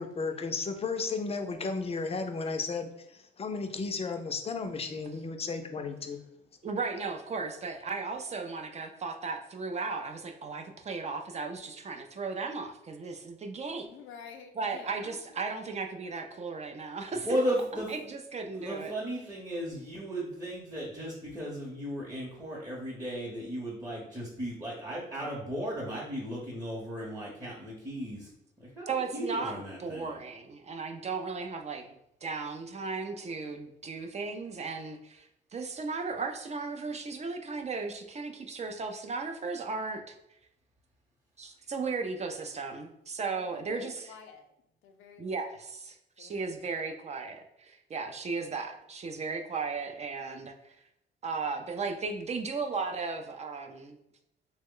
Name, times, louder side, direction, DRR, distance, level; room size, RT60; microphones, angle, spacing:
voice 1, 0.0-6.2, left 4 dB, 30° left, 6 dB, 0.4 m, -34 dB
voice 2, 6.6-13.9 14.6-17.4 17.7-19.0 28.9-40.1 41.4-44.1 45.2-50.8 51.2-54.0, right 4 dB, 35° right, 5 dB, 0.4 m, -36 dB
voice 3, 13.8-15.2 43.3-44.5 44.8-45.6 46.2-47.1, left 6 dB, 90° left, 5 dB, 0.5 m, -50 dB
voice 4, 17.2-17.9 18.5-28.3 28.6-30.2, equal, 15° right, -6 dB, 0.8 m, -35 dB
3.1 x 2.1 x 3.6 m, 0.80 s
cardioid pair, 90°, 20 cm